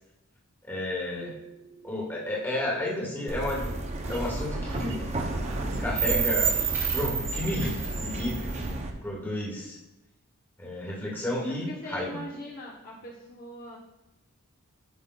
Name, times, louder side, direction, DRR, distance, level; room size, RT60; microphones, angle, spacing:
voice 1, 0.6-1.4 1.8-3.6 4.1-5.1 5.8-6.6 6.9-9.8 10.6-12.2, left 1 dB, 10° left, -4 dB, 1.3 m, -32 dB
sound 1, 1.2-7.1, right 3 dB, 70° right, 0.6 m, -45 dB
sound 2, 3.3-8.9, right 4 dB, 30° right, 0.5 m, -30 dB
sound 3, 4.0-8.8, equal, 10° right, 1.3 m, -49 dB
voice 2, 11.5-13.8, equal, 40° left, -3 dB, 0.8 m, -41 dB
10.5 x 5.3 x 2.2 m, 0.95 s
head